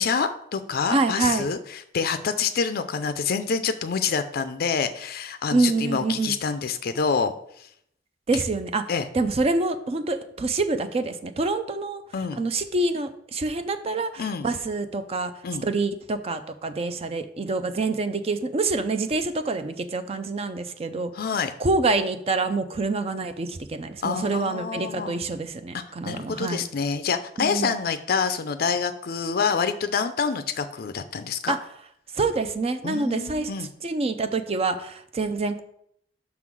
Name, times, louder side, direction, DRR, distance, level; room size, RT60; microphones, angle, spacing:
voice 1, 0.0-7.3 8.3-8.4 8.9-9.1 12.1-12.4 14.2-14.5 15.4-15.7 21.1-21.5 24.0-25.1 25.7-31.6 32.8-33.7, left 5 dB, 55° left, 10 dB, 0.4 m, -27 dB
voice 2, 0.9-1.5 5.5-6.4 8.3-8.8 9.1-12.0 12.3-15.3 15.6-21.1 21.6-26.6 27.4-27.7 31.5-31.6 32.1-33.5 33.8-35.6, right 3 dB, 35° right, 9 dB, 0.4 m, -26 dB
5.9 x 3.8 x 6.1 m, 0.70 s
head